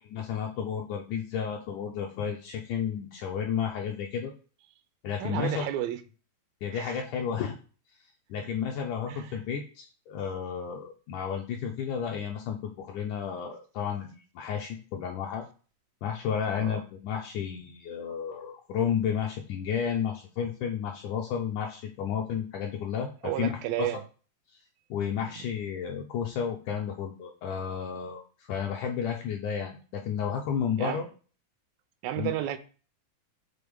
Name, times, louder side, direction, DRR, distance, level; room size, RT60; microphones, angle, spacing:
voice 1, 0.1-4.3 5.0-5.7 6.6-7.6 8.3-15.5 16.0-23.9 24.9-28.2 28.5-31.1 32.2-32.3, left 7 dB, 80° left, 1.9 m, -32 dB
voice 2, 5.2-6.0 6.7-7.0 8.4-8.5 9.1-9.4 16.6-16.8 23.2-24.0 30.8-31.0 32.0-32.6, right 13 dB, 85° right, 2.3 m, -32 dB
6.7 x 3.9 x 3.5 m
omnidirectional pair, 4.1 m